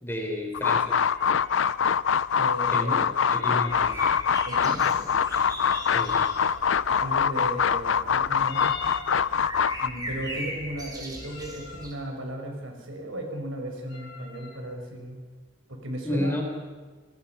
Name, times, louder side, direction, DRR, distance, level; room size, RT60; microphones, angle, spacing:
voice 1, 0.0-1.0 2.7-3.0 3.3-3.9 5.9-6.2 16.0-16.4, left 1 dB, 10° left, 1 dB, 4.1 m, -30 dB
sound 1, 0.5-9.9, left 7 dB, 75° left, 0.6 m, -24 dB
sound 2, 1.1-1.8 3.1-4.0 5.6-6.5 8.4-9.2 11.1-11.9 13.9-14.6, left 4 dB, 55° left, 3.8 m, -43 dB
voice 2, 2.4-3.1 4.4-5.0 6.9-8.8 9.8-15.2 15.7-16.4, right 1 dB, 75° right, 3 dB, 5.1 m, -35 dB
sound 3, 3.7-11.9, equal, 20° right, 4.0 m, -40 dB
28.5 x 19.5 x 5.8 m, 1.4 s
head